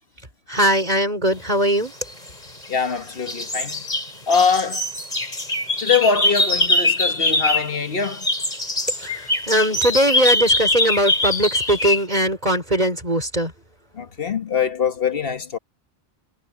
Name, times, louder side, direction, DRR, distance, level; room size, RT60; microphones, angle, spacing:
voice 1, 0.5-1.9 8.9-13.5, right 1 dB, 35° right, 4.3 m, -20 dB
sound 1, 2.1-2.9 3.3-7.8 8.0-12.0, left 2 dB, 35° left, 3.8 m, -22 dB
voice 2, 2.7-3.9 4.3-4.9 5.8-8.3 13.9-15.6, left 5 dB, 50° left, 1.6 m, -22 dB
omnidirectional pair, 1.3 m